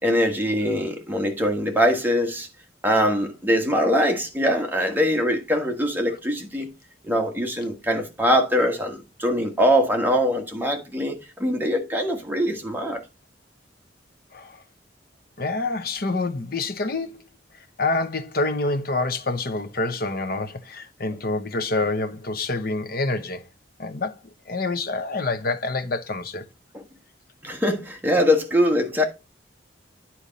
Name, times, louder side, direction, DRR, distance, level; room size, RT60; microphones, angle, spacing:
voice 1, 0.0-2.5 2.8-6.7 7.0-13.0 26.7-26.8 27.4-29.0, equal, 10° right, 1.6 m, -22 dB
voice 2, 14.3-14.6 15.4-17.2 17.8-23.5 23.8-24.2 24.5-26.4, left 3 dB, 55° left, 1.0 m, -27 dB
10.0 x 4.4 x 4.1 m
head